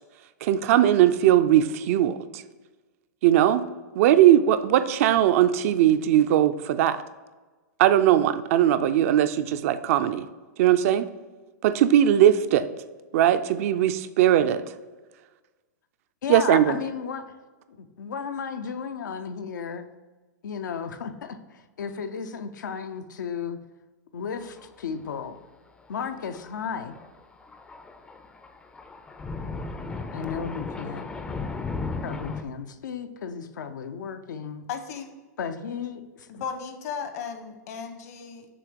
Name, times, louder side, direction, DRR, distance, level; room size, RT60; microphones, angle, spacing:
voice 1, 0.4-2.4 3.2-3.6 4.0-7.0 7.8-10.3 10.6-11.1 11.6-12.7 13.1-14.6 16.3-16.8, right 11 dB, 50° right, 11 dB, 0.4 m, -19 dB
voice 2, 16.2-17.3 17.7-19.9 20.4-23.6 24.1-25.4 25.9-27.0 30.1-31.1 32.0-34.6 35.4-36.4, left 6 dB, 85° left, 8 dB, 0.6 m, -34 dB
Thunder, 24.4-24.8 25.1-25.2 26.2-32.4, left 3 dB, 10° left, 0.4 m, -36 dB
voice 3, 34.7-35.1 36.3-38.5, left 6 dB, 60° left, 7 dB, 0.9 m, -35 dB
6.9 x 2.8 x 5.1 m, 1.3 s
hypercardioid pair, 140°, 10 cm